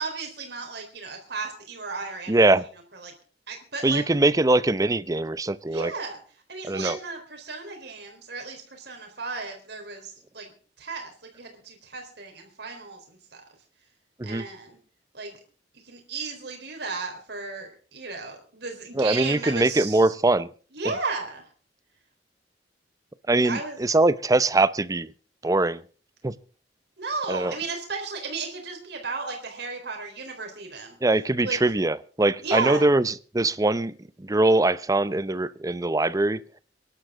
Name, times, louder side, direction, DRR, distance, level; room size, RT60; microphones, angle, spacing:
voice 1, 0.0-2.4 2.9-3.1 3.5-4.0 5.7-6.2 6.5-10.5 10.8-13.4 14.2-14.8 15.1-15.4 15.8-20.1 20.7-21.4 23.4-23.8 27.0-31.0 31.4-31.6 32.4-32.8, right 4 dB, 65° right, 4.0 m, -34 dB
voice 2, 2.3-2.6 3.8-5.9 6.6-7.0 14.2-14.4 18.9-20.5 23.3-25.1 25.4-25.8 26.2-26.3 27.3-27.5 31.0-33.9 34.2-36.4, right 2 dB, 20° right, 0.6 m, -22 dB
24.5 x 11.5 x 3.7 m
head